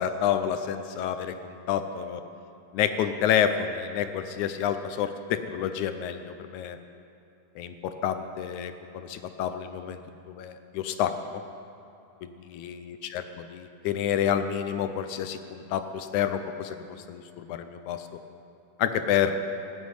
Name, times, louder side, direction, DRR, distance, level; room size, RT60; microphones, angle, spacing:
voice 1, 0.0-2.2 2.7-6.8 7.6-10.0 10.3-11.4 12.2-18.1 18.8-19.4, left 9 dB, 80° left, 9 dB, 2.0 m, -29 dB
16.5 x 8.3 x 9.4 m, 2.7 s
omnidirectional pair, 3.5 m